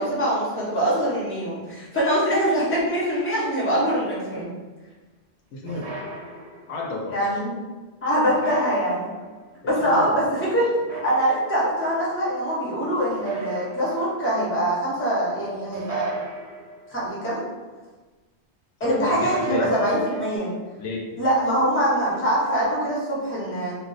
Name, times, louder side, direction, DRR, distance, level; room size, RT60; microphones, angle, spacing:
voice 1, 0.0-4.5 7.1-7.5 8.0-9.1 9.6-10.2 10.5-10.7 10.9-16.1 16.9-17.5 18.8-20.5 21.2-23.7, equal, 15° left, -7 dB, 0.7 m, -23 dB
voice 2, 5.5-6.0 6.7-7.3 9.8-10.4 18.8-19.8 20.8-21.1, left 2 dB, 90° left, -1 dB, 0.9 m, -31 dB
sound 1, 5.7-6.9 8.3-9.4 10.7-11.7 13.1-14.3 15.7-17.1 19.1-20.4, right 4 dB, 70° right, 0.8 m, -35 dB
2.4 x 2.1 x 3.9 m, 1.3 s
omnidirectional pair, 1.2 m